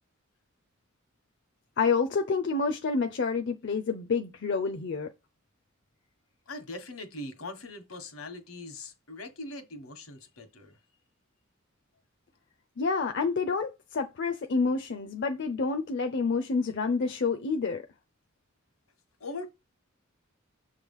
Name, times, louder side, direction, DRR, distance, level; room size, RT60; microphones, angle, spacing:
voice 1, 1.8-5.1 12.8-17.8, left 4 dB, 60° left, 0.6 m, -28 dB
voice 2, 6.5-10.8 19.2-19.5, left 2 dB, 80° left, 1.4 m, -41 dB
7.1 x 3.2 x 5.4 m
head